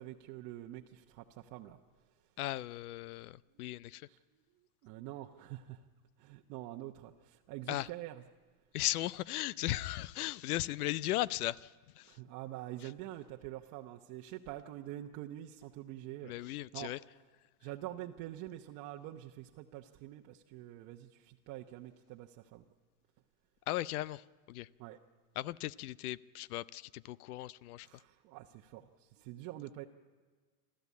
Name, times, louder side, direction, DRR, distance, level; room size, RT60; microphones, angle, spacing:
voice 1, 0.0-1.8 3.6-3.7 4.1-4.2 4.8-5.8 6.2-8.2 12.0-16.3 16.7-16.9 17.6-22.6 24.8-25.0 27.8-29.8, right 14 dB, 40° right, 1 dB, 1.0 m, -46 dB
voice 2, 2.4-4.1 7.7-7.9 8.7-12.2 12.8-12.9 16.2-17.0 23.7-24.7 25.4-27.9, left 15 dB, 70° left, 20 dB, 0.6 m, -37 dB
29.0 x 13.0 x 8.4 m, 1.4 s
supercardioid pair, 140°, 46 cm